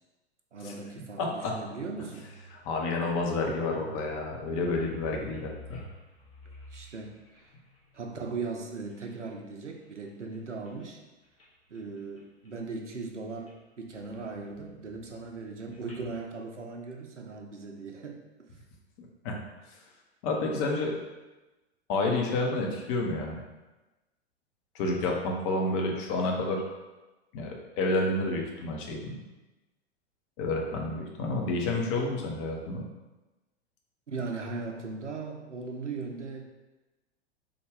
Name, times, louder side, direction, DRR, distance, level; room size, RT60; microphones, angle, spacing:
voice 1, 0.5-2.3 6.7-7.4 7.9-11.0 11.7-18.2 34.1-36.4, right 4 dB, 85° right, 2 dB, 0.5 m, -38 dB
voice 2, 1.2-1.5 2.6-5.9 19.2-19.3 20.2-20.9 21.9-23.4 24.7-26.6 27.3-29.2 30.4-32.8, left 2 dB, 25° left, 0 dB, 0.5 m, -29 dB
sound 1, 1.9-9.4 9.8-10.9 11.2-11.5 11.7-12.6 12.9-13.5 13.8-16.2, equal, 60° left, 1.1 m, -51 dB
3.4 x 2.1 x 3.4 m, 1.1 s
figure-of-eight pair, 100°, 35 cm